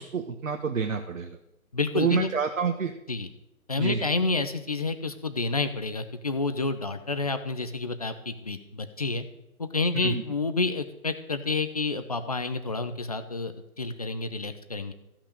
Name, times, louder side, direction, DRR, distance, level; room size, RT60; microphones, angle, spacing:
voice 1, 0.0-1.4 1.9-2.9 3.8-4.1 9.9-10.2, right 6 dB, 65° right, 5 dB, 1.3 m, -28 dB
voice 2, 1.7-2.3 3.1-3.3 3.7-9.2 9.6-14.9, left 3 dB, 25° left, 9 dB, 0.6 m, -29 dB
15.0 x 6.0 x 6.6 m, 0.88 s
figure-of-eight pair, 150°, 44 cm